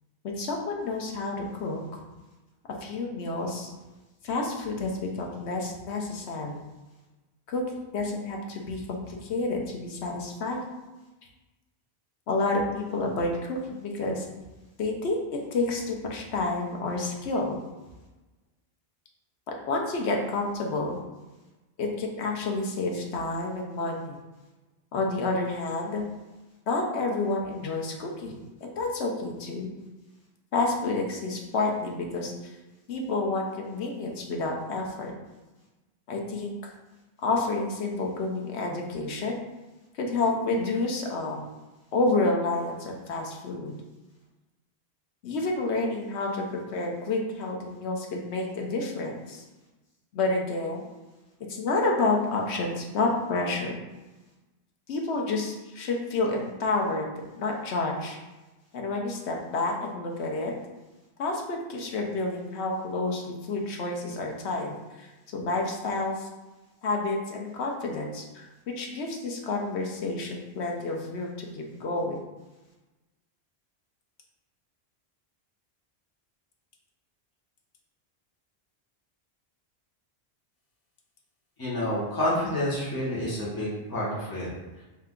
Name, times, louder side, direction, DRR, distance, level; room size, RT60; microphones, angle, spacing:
voice 1, 0.2-2.0 2.8-3.7 4.2-4.9 5.2-6.6 7.5-10.6 12.3-14.3 14.8-15.2 15.5-17.6 19.7-21.0 21.8-24.2 24.9-26.0 26.7-28.3 28.6-29.7 30.5-32.3 32.9-35.1 36.1-36.7 37.2-39.4 40.0-41.4 41.9-43.8 45.2-49.4 50.1-50.8 51.5-53.7 54.9-58.2 58.7-60.5 61.2-66.3 66.8-68.5 68.8-72.2, left 3 dB, 85° left, 0 dB, 1.0 m, -29 dB
voice 2, 81.6-84.5, left 1 dB, 20° left, -7 dB, 1.1 m, -29 dB
3.3 x 2.8 x 3.6 m, 1.1 s
omnidirectional pair, 1.1 m